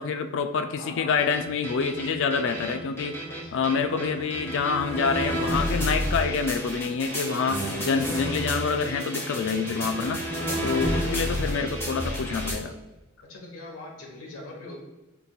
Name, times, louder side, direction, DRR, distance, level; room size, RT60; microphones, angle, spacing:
voice 1, 0.0-3.2 3.5-10.2 10.6-12.7, left 5 dB, 60° left, 9 dB, 0.4 m, -27 dB
voice 2, 0.7-1.3 3.2-4.1 10.3-11.2 13.3-14.8, left 2 dB, 80° left, 0 dB, 1.2 m, -42 dB
sound 1, 1.2-12.5, equal, 10° left, 1.0 m, -30 dB
5.7 x 3.4 x 2.3 m, 1.1 s
head